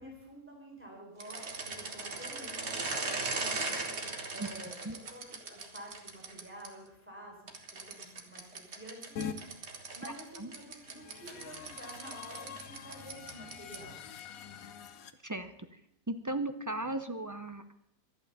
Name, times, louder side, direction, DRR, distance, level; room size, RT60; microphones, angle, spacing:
voice 1, 0.0-7.4 7.7-14.0, equal, 10° right, -1 dB, 4.1 m, -50 dB
sound 1, 1.2-6.7 7.5-14.0, right 3 dB, 50° right, 1.7 m, -39 dB
sound 2, 9.2-9.4 10.7-15.1, left 7 dB, 75° left, 1.2 m, -44 dB
voice 2, 16.1-17.7, right 2 dB, 30° right, 8 dB, 0.3 m, -36 dB
11.5 x 11.5 x 6.8 m, 0.76 s
omnidirectional pair, 1.5 m